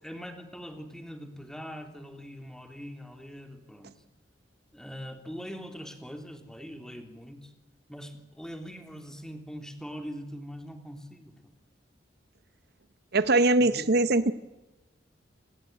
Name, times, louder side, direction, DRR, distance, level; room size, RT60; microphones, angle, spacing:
voice 1, 0.0-3.9 4.7-7.5 7.9-11.5 13.6-13.9, equal, 5° left, 6 dB, 3.2 m, -42 dB
voice 2, 13.1-14.3, right 2 dB, 60° right, 15 dB, 0.9 m, -22 dB
30.0 x 19.5 x 9.2 m, 1.1 s
head